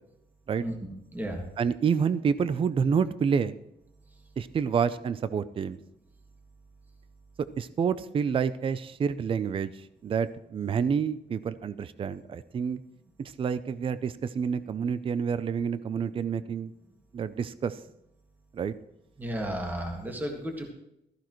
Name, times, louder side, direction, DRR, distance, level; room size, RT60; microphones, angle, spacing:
voice 1, 0.6-1.4 19.2-20.7, equal, 10° right, 1 dB, 1.7 m, -34 dB
voice 2, 1.6-3.5 4.4-5.8 7.6-9.7 10.0-12.8 13.2-16.7 17.1-17.8 18.5-18.7, right 6 dB, 30° right, 14 dB, 0.4 m, -28 dB
16.0 x 14.5 x 3.1 m, 0.82 s
wide cardioid pair, 170°, 17 cm